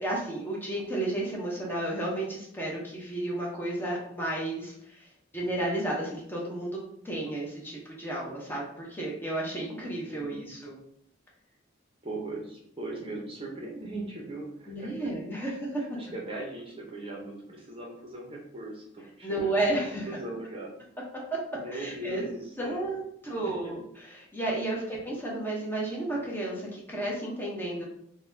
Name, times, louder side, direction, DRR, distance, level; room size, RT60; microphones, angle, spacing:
voice 1, 0.0-6.8 7.0-10.8 14.7-15.8 19.2-20.1 21.7-22.3 22.6-27.8, right 1 dB, 10° left, -4 dB, 0.7 m, -32 dB
voice 2, 10.1-10.5 12.0-15.1 15.4-19.6 19.9-20.7 21.5-22.8 23.3-23.7 24.8-25.0, right 2 dB, 30° right, -1 dB, 0.6 m, -39 dB
3.9 x 2.2 x 2.6 m, 0.71 s
head